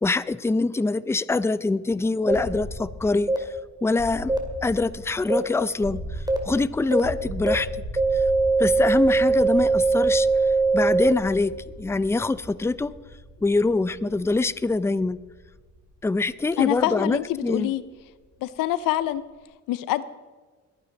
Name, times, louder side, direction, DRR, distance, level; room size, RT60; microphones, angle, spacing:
voice 1, 0.0-3.5 3.8-4.3 4.6-6.0 6.5-7.7 8.1-8.2 8.6-10.3 10.7-11.5 11.8-12.9 13.4-15.2 16.0-17.7, left 3 dB, 10° left, 17 dB, 0.5 m, -24 dB
sound 1, 2.3-2.4 3.3-3.4 4.3-4.4 5.3-5.4 6.3-6.4 6.9-7.0 7.5-7.6 8.0-11.1, right 3 dB, 10° right, 2.2 m, -20 dB
sound 2, 2.3-18.1, right 1 dB, 85° right, 5.2 m, -39 dB
voice 2, 16.6-17.8 18.4-19.2 19.7-20.0, left 14 dB, 90° left, 17 dB, 0.6 m, -25 dB
21.5 x 9.2 x 4.0 m, 1.4 s
cardioid pair, 70°, 32 cm